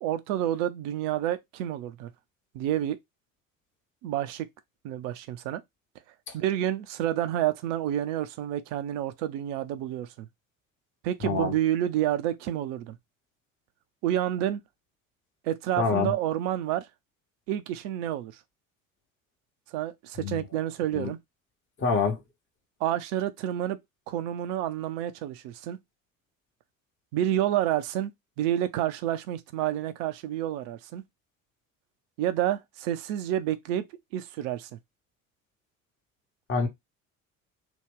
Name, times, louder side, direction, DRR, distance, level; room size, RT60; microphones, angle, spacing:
voice 1, 0.0-2.1 2.5-3.0 4.0-4.5 4.8-5.6 6.3-10.3 11.0-13.0 14.0-14.6 15.4-16.9 17.5-18.4 19.7-21.2 22.8-23.8 24.1-25.8 27.1-28.1 28.4-31.0 32.2-33.9 34.1-34.8, right 12 dB, 60° right, 0.6 m, -29 dB
voice 2, 11.2-11.5 15.8-16.1 20.2-20.4 20.9-21.1 21.8-22.2 36.5-36.7, left 5 dB, 30° left, 1.0 m, -26 dB
2.9 x 2.2 x 3.6 m
figure-of-eight pair, 60°, 40 cm